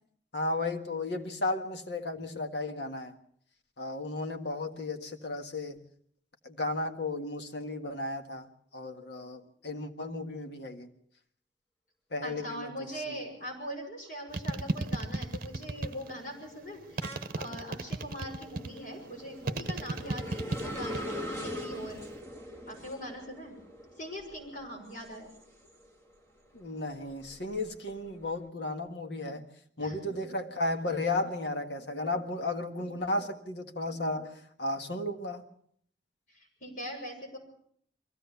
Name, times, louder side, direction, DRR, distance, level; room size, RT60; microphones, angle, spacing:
voice 1, 0.3-3.1 3.8-5.8 6.4-8.5 8.7-10.9 12.1-12.7 26.6-29.5 29.8-35.4, left 2 dB, 65° left, 5 dB, 1.7 m, -34 dB
voice 2, 12.2-22.0 22.7-23.6 24.0-25.3 29.8-30.0 36.3-37.4, equal, 45° left, 0 dB, 6.4 m, -41 dB
sound 1, 14.1-14.5 14.9-26.1 26.6-28.3, equal, 15° left, 2.0 m, -43 dB
sound 2, 14.3-16.2 17.0-18.8 19.5-21.1 21.4-22.0, right 2 dB, 50° right, 0.9 m, -34 dB
23.0 x 16.0 x 7.0 m, 0.64 s
head